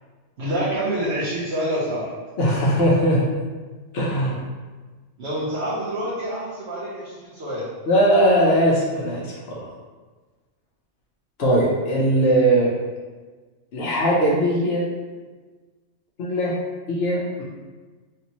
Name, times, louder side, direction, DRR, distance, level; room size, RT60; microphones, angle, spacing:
voice 1, 0.4-2.1 5.2-7.7, right 1 dB, 60° right, -8 dB, 0.9 m, -27 dB
voice 2, 2.4-3.3 3.9-4.4 7.9-9.6 11.4-12.8 13.7-14.9 16.2-16.6 16.9-17.4, right 1 dB, 60° left, -3 dB, 0.8 m, -20 dB
3.3 x 2.8 x 2.8 m, 1.3 s
omnidirectional pair, 1.4 m